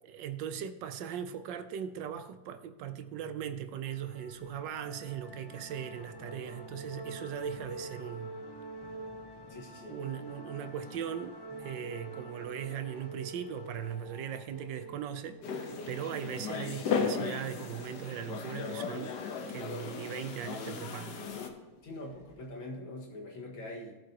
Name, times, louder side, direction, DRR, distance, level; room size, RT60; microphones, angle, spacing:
voice 1, 0.0-8.3 9.9-19.1 19.4-21.2, right 9 dB, 75° right, 10 dB, 1.3 m, -39 dB
sound 1, 3.9-22.6, right 2 dB, 35° left, 0.4 m, -48 dB
voice 2, 9.5-10.0 21.8-23.9, left 1 dB, 90° left, -1 dB, 2.6 m, -43 dB
sound 2, 15.4-21.5, left 5 dB, 65° left, 1.6 m, -36 dB
17.0 x 7.5 x 2.9 m, 1.2 s
omnidirectional pair, 2.1 m